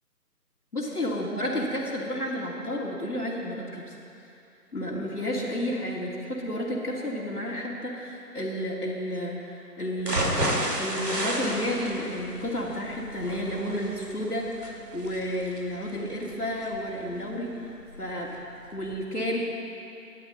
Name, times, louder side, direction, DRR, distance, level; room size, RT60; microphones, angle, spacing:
voice 1, 0.7-4.0 4.7-10.4 10.8-18.3 18.7-19.6, equal, 65° left, -4 dB, 2.8 m, -31 dB
sound 1, 10.0-18.0 18.4-18.5 18.9-19.0, right 1 dB, 75° right, 2.5 m, -32 dB
26.5 x 11.5 x 3.9 m, 2.6 s
figure-of-eight pair, 175°, 49 cm